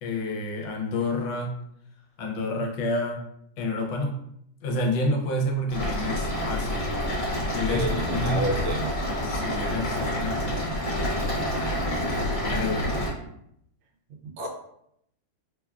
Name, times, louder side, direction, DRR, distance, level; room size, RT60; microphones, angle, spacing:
voice 1, 0.0-1.5 2.2-3.2 3.6-4.2 4.6-6.9 7.5-8.5 9.2-11.3 12.5-12.9, left 1 dB, 80° left, 2 dB, 1.2 m, -29 dB
sound 1, 5.7-13.1, left 1 dB, 40° left, 1.2 m, -28 dB
voice 2, 7.7-8.9 14.2-14.5, right 1 dB, 85° right, 1 dB, 1.4 m, -29 dB
3.3 x 2.3 x 2.2 m, 0.74 s
omnidirectional pair, 2.1 m